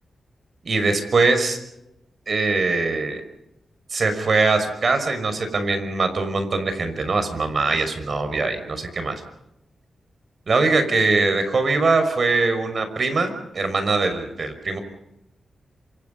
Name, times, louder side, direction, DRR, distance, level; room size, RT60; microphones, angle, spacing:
voice 1, 0.6-1.6 2.3-3.2 3.9-9.2 10.5-14.8, right 3 dB, 55° right, 9 dB, 5.7 m, -22 dB
27.5 x 25.5 x 5.4 m, 0.85 s
cardioid pair, 70°, 0 cm